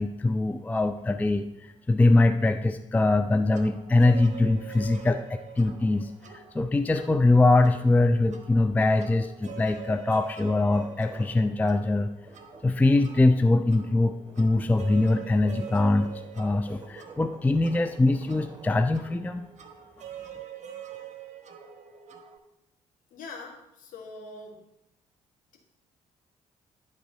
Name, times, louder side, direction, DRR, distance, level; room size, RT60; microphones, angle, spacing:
voice 1, 0.0-12.1 12.6-16.1 16.4-19.5, left 2 dB, 10° left, 8 dB, 0.4 m, -23 dB
sound 1, 3.5-22.4, right 8 dB, 45° right, 1.0 m, -45 dB
sound 2, 10.6-18.8, right 3 dB, 25° right, 1.5 m, -48 dB
voice 2, 23.1-24.6, left 3 dB, 55° left, 0 dB, 1.7 m, -43 dB
10.5 x 3.6 x 5.2 m, 0.85 s
figure-of-eight pair, 45°, 17 cm